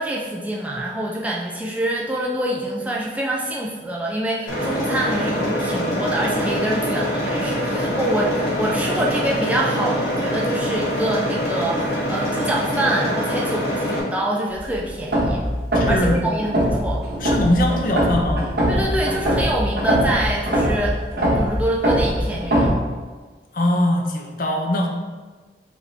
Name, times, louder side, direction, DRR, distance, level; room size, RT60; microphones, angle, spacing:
voice 1, 0.0-15.5 15.9-17.0 18.7-21.0 21.3-22.7, right 1 dB, 10° right, -3 dB, 0.3 m, -25 dB
sound 1, 4.5-14.0, equal, 70° left, 1.3 m, -24 dB
sound 2, 14.5-22.7, equal, 60° right, 1.0 m, -22 dB
voice 2, 15.7-16.3 17.2-18.4 23.5-24.9, left 1 dB, 50° left, 2 dB, 0.5 m, -21 dB
5.2 x 2.6 x 3.2 m, 1.4 s
head